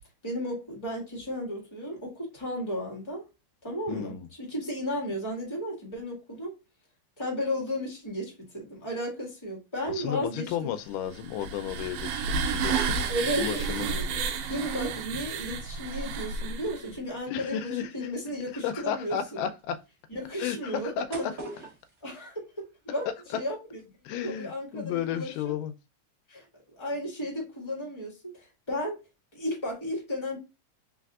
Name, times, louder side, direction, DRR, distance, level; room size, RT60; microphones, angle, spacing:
voice 1, 0.2-3.2 3.6-6.5 7.2-10.7 13.1-14.2 14.5-19.2 20.1-21.3 22.0-23.1 23.3-23.8 24.1-25.3 26.3-26.4 26.8-29.0 29.3-30.4, equal, 15° left, 0.9 m, -34 dB
voice 2, 3.9-4.3 9.9-13.1 13.4-14.0 17.3-18.1 18.6-19.8 20.4-21.3 23.3-23.4 24.1-25.7, left 9 dB, 90° left, 2.2 m, -33 dB
sound 1, 10.4-11.5 11.7-12.1 12.5-13.7 14.3-22.9 23.2-23.8 24.2-24.4, right 3 dB, 40° right, 0.7 m, -46 dB
sound 2, 11.1-17.0, right 5 dB, 80° right, 2.1 m, -31 dB
4.3 x 4.0 x 2.3 m
omnidirectional pair, 3.7 m